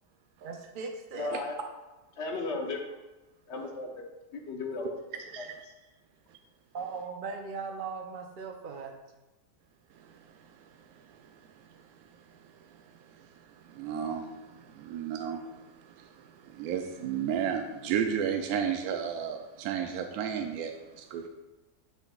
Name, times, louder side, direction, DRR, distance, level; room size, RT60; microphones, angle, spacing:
voice 1, 0.4-1.4 6.7-8.9, right 5 dB, 60° right, 3 dB, 0.5 m, -38 dB
voice 2, 1.1-1.6 2.2-2.8 3.5-4.0 4.3-4.9 5.4-5.5, left 3 dB, 55° left, 2 dB, 1.1 m, -35 dB
voice 3, 13.7-15.5 16.0-16.1 16.5-21.3, right 8 dB, 80° right, 4 dB, 1.0 m, -32 dB
7.7 x 7.0 x 2.3 m, 1.1 s
omnidirectional pair, 1.6 m